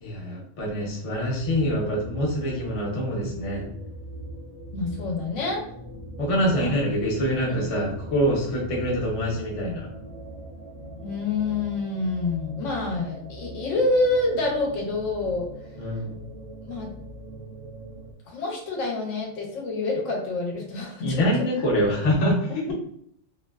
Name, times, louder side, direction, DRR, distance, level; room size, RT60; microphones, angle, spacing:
voice 1, 0.0-3.7 6.2-9.9 15.8-16.2 21.0-22.7, equal, 40° left, -4 dB, 0.5 m, -25 dB
sound 1, 1.3-18.1, right 1 dB, 55° right, 0.7 m, -41 dB
voice 2, 4.7-5.6 6.6-6.7 7.5-7.6 11.0-15.5 16.6-16.9 18.3-21.2 22.5-22.7, left 3 dB, 70° left, 0 dB, 0.9 m, -27 dB
2.6 x 2.1 x 2.2 m, 0.66 s
omnidirectional pair, 1.4 m